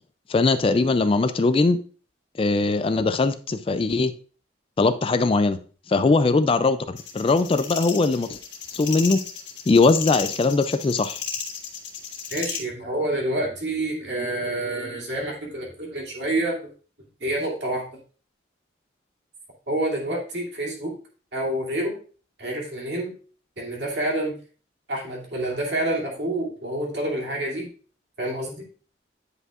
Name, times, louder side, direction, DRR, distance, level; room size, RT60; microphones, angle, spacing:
voice 1, 0.3-1.8 2.4-4.1 4.8-5.6 5.9-8.4 8.7-9.2 9.7-11.2, left 3 dB, 30° left, 11 dB, 0.3 m, -20 dB
sound 1, 7.0-12.6, left 7 dB, 65° left, 1.6 m, -34 dB
voice 2, 12.3-16.7 17.2-17.9 19.7-20.9 21.3-22.0 22.4-23.1 23.6-24.4 24.9-27.7 28.2-28.6, right 1 dB, 60° right, -2 dB, 2.6 m, -28 dB
9.6 x 5.4 x 2.4 m, 0.40 s
head